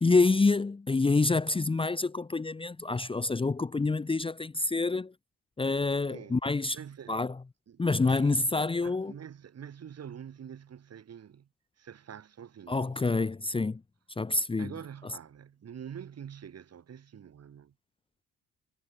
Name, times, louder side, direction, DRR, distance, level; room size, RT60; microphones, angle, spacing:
voice 1, 0.0-5.1 5.6-6.8 7.1-7.4 7.8-9.1 12.7-13.8 14.2-14.7, left 3 dB, 15° left, 0.8 m, -27 dB
voice 2, 6.1-6.4 6.7-7.2 7.7-8.4 8.8-11.5 11.8-13.1 14.6-17.7, right 8 dB, 55° right, 6.2 m, -46 dB
cardioid pair, 90°, 30 cm